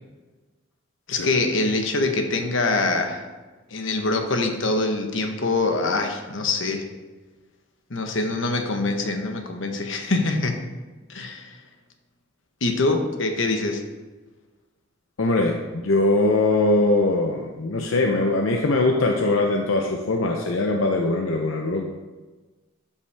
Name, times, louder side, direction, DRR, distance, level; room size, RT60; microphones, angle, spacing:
voice 1, 1.1-3.2 3.7-6.9 7.9-10.6 11.1-11.6 12.6-13.8, left 3 dB, 70° left, 4 dB, 1.0 m, -24 dB
voice 2, 15.2-21.8, left 2 dB, 90° left, 2 dB, 0.7 m, -21 dB
11.5 x 5.7 x 3.4 m, 1.2 s
head